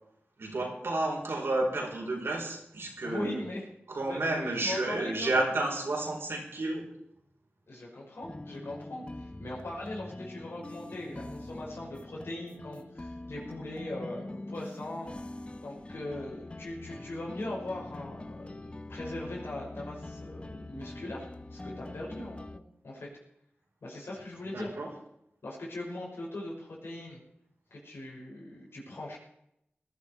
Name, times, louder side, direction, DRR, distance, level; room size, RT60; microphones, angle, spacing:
voice 1, 0.4-3.4 3.9-6.9 24.4-24.9, right 2 dB, 80° right, 0 dB, 4.9 m, -31 dB
voice 2, 3.0-3.6 4.0-5.5 7.7-15.1 15.6-23.1 23.8-24.7 25.4-27.2 27.7-29.2, left 1 dB, 80° left, -3 dB, 5.8 m, -40 dB
sound 1, 8.2-22.6, left 2 dB, 25° left, 1.0 m, -44 dB
19.0 x 12.0 x 4.8 m, 0.78 s
cardioid pair, 50°, 4 cm